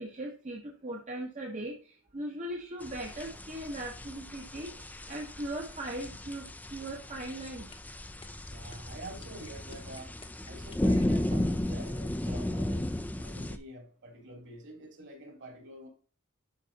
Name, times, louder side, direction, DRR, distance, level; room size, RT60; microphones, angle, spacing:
voice 1, 0.0-7.7, right 1 dB, 35° right, -1 dB, 1.1 m, -39 dB
sound 1, 2.8-13.6, left 1 dB, 5° left, 0.4 m, -34 dB
sound 2, 7.2-11.0, left 4 dB, 25° left, 0.9 m, -51 dB
voice 2, 8.5-10.1 10.5-15.9, right 1 dB, 55° right, 0 dB, 3.1 m, -47 dB
11.5 x 4.8 x 2.8 m, 0.38 s
head